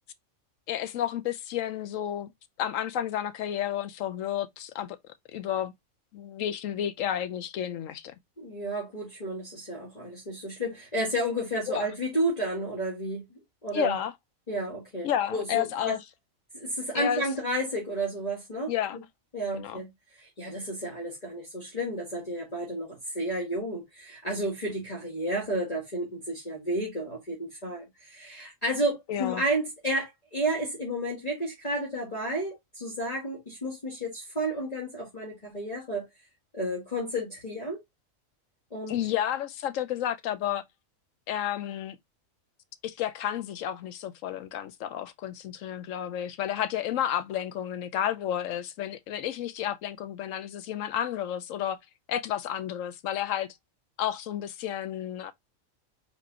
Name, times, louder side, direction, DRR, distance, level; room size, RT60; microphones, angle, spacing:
voice 1, 0.7-2.3 2.6-5.0 5.3-5.7 6.1-8.1 11.7-11.9 13.7-14.1 15.0-16.0 16.9-17.2 18.7-19.0 19.5-19.8 29.1-29.4 38.9-40.6 41.3-42.0 42.8-51.8 52.1-53.5 54.0-55.3, left 10 dB, 75° left, 1.0 m, -31 dB
voice 2, 8.4-14.0 14.5-16.0 16.5-18.7 19.3-19.9 20.2-36.1 36.5-37.8 38.7-39.0, right 1 dB, 30° left, 1.6 m, -32 dB
4.5 x 4.3 x 2.7 m
omnidirectional pair, 1.4 m